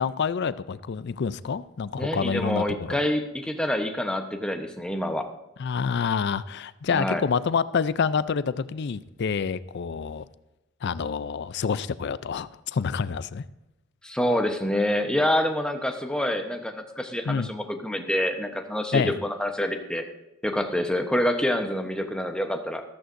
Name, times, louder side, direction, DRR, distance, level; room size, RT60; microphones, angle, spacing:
voice 1, 0.0-3.0 5.6-10.2 10.8-13.4 17.3-17.5 18.9-19.2, left 6 dB, 50° left, 16 dB, 0.4 m, -27 dB
voice 2, 2.0-5.3 6.9-7.2 14.0-20.0 20.4-22.8, left 1 dB, 5° left, 4 dB, 0.9 m, -27 dB
14.5 x 14.0 x 2.6 m, 0.95 s
head